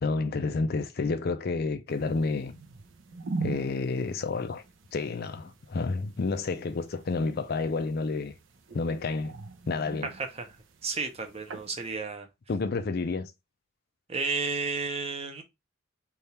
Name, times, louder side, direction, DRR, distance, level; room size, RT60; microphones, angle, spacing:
voice 1, 0.0-2.6 3.4-4.6 4.9-8.3 8.7-9.4 9.7-10.1 12.5-13.3, left 3 dB, 50° left, 0.4 m, -30 dB
sound 1, 1.9-12.0, right 3 dB, 60° right, 0.6 m, -42 dB
voice 2, 10.0-10.5 10.8-12.3 14.1-15.4, right 4 dB, 30° right, 0.7 m, -32 dB
3.4 x 2.4 x 4.1 m
head